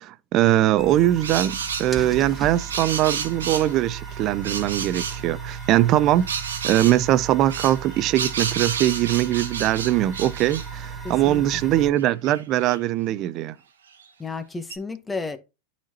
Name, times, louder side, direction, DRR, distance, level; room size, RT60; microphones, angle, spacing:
voice 1, 0.0-6.3 6.6-13.5, right 13 dB, 45° right, 0.6 m, -21 dB
sound 1, 0.8-11.9, right 6 dB, 10° right, 2.4 m, -36 dB
sound 2, 1.2-1.9 2.6-3.7 4.4-5.2 6.3-7.0 7.5-10.7 11.3-11.4 11.6-12.8 14.0-14.1 14.7-14.8, right 6 dB, 90° right, 1.0 m, -30 dB
voice 2, 11.0-11.4 14.2-15.4, left 3 dB, 10° left, 1.2 m, -32 dB
11.5 x 4.3 x 2.9 m
hypercardioid pair, 110°, 0 cm